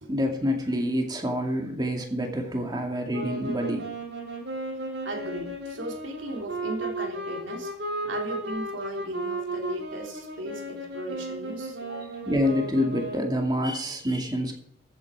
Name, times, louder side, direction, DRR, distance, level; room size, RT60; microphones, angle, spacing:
voice 1, 0.1-3.9 12.3-14.5, equal, 20° right, 2 dB, 2.4 m, -27 dB
sound 1, 3.1-13.4, right 1 dB, 65° right, 5.5 m, -35 dB
voice 2, 5.0-7.7 8.0-12.2, right 1 dB, 85° right, 2 dB, 3.2 m, -37 dB
14.5 x 8.9 x 4.8 m, 0.73 s
head